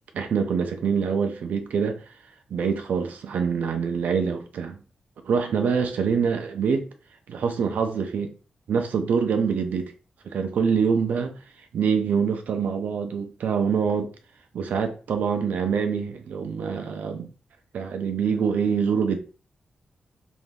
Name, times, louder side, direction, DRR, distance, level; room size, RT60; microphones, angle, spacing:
voice 1, 0.1-2.1 2.5-4.8 5.2-6.9 7.3-8.3 8.7-9.9 10.2-11.4 11.7-14.1 14.5-17.3 17.7-19.2, right 6 dB, 90° right, 0.4 m, -25 dB
3.3 x 2.5 x 2.2 m
wide cardioid pair, 150°, 3 cm